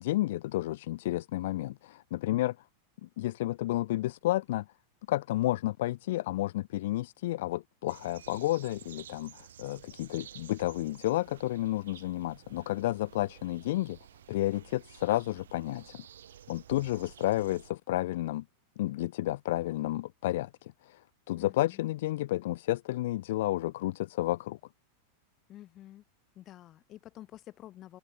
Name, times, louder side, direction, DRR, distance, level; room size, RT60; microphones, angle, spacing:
voice 1, 0.0-2.6 3.0-4.7 5.1-14.0 14.3-16.1 16.5-18.4 18.8-21.0 21.3-24.6, left 16 dB, 55° left, 0.6 m, -31 dB
sound 1, 7.9-17.7, right 10 dB, 65° right, 7.0 m, -52 dB
voice 2, 21.4-21.9 25.5-26.0 26.4-28.0, left 13 dB, 35° left, 3.9 m, -49 dB
figure-of-eight pair, 90°, 0 cm